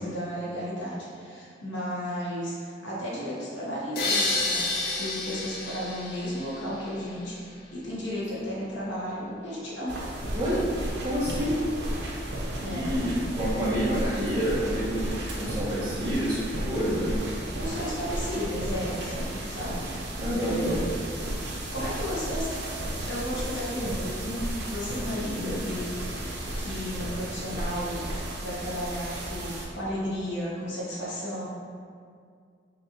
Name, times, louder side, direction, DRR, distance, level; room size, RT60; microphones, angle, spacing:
voice 1, 0.0-10.0 12.6-12.9 17.5-19.9 20.4-20.9 21.4-22.6 23.1-25.9 26.1-28.0 28.4-31.5, equal, 75° left, -7 dB, 1.3 m, -34 dB
sound 1, 4.0-7.0, left 2 dB, 55° left, 0.6 m, -29 dB
sound 2, 9.9-29.7, right 1 dB, 65° right, 0.9 m, -33 dB
voice 2, 10.3-10.7 11.0-11.6 12.6-17.1 20.2-20.8 25.1-25.6, equal, 20° right, -10 dB, 1.4 m, -28 dB
5.4 x 3.4 x 2.9 m, 2.2 s
head